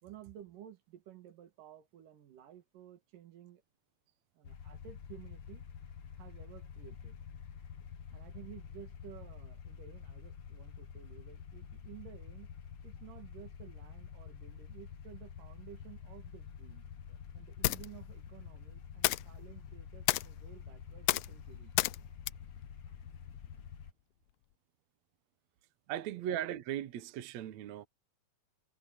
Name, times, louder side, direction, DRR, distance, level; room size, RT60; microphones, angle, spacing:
voice 1, 0.0-3.6 4.3-5.6 6.2-7.2 8.1-12.5 12.8-16.8 17.3-21.7 22.9-23.0 25.9-26.2, right 11 dB, 90° right, 3.3 m, -54 dB
sound 1, 4.4-23.9, left 7 dB, 55° left, 1.4 m, -48 dB
sound 2, 16.5-23.7, left 19 dB, 80° left, 1.7 m, -36 dB
voice 2, 25.9-27.9, right 11 dB, 65° right, 2.2 m, -38 dB
omnidirectional pair, 3.7 m